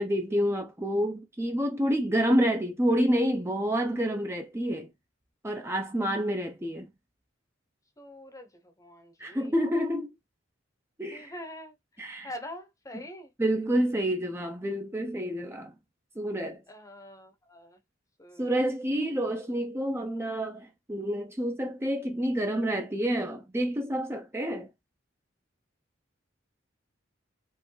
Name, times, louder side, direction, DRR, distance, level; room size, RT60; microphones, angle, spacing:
voice 1, 0.0-4.9 5.4-6.9 9.2-10.1 11.0-11.3 12.0-12.3 13.4-15.7 16.2-16.6 18.4-24.7, equal, 15° right, 0.7 m, -28 dB
voice 2, 8.0-9.5 11.1-11.7 12.2-13.3 16.7-17.8 18.2-18.6 18.9-19.2, left 1 dB, 15° left, 1.0 m, -44 dB
4.5 x 3.4 x 3.2 m
head